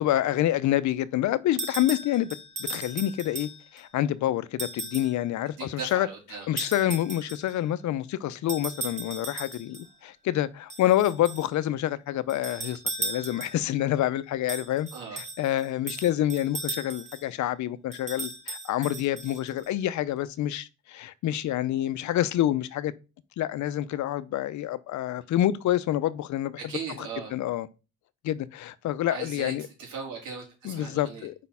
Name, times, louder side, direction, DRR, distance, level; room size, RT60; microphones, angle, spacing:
voice 1, 0.0-6.1 6.5-14.9 15.1-22.9 23.4-26.6 27.0-27.7 28.2-29.7 30.6-31.3, left 13 dB, 70° left, 0.6 m, -27 dB
sound 1, 1.6-3.8 4.6-5.2 6.6-7.6 8.5-9.9 10.7-11.5 12.3-13.7 14.5-17.3 17.9-19.7, right 3 dB, 25° right, 1.4 m, -37 dB
voice 2, 5.6-6.5 14.9-15.2 26.6-27.3 29.1-29.5 29.8-31.3, right 5 dB, 80° right, 3.4 m, -38 dB
5.2 x 4.1 x 5.5 m
cardioid pair, 90°, 30 cm